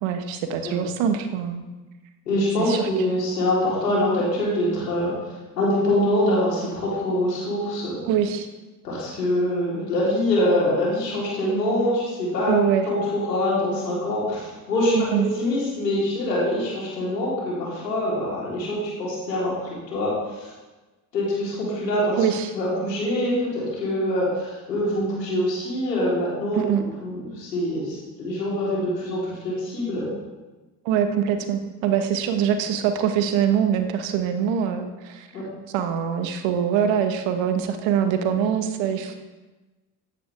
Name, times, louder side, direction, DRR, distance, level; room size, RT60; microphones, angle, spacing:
voice 1, 0.0-1.6 2.6-2.9 8.1-8.5 12.5-12.9 14.9-15.3 22.2-22.5 26.5-26.8 30.8-35.3 35.7-39.2, right 8 dB, 65° right, 7 dB, 1.5 m, -23 dB
voice 2, 2.3-5.1 5.6-8.0 8.8-12.6 12.9-20.5 21.1-22.3 22.5-26.6 27.0-30.1 35.3-35.4, left 1 dB, 85° left, -5 dB, 3.9 m, -24 dB
15.5 x 10.0 x 3.5 m, 1.2 s
hypercardioid pair, 50°, 49 cm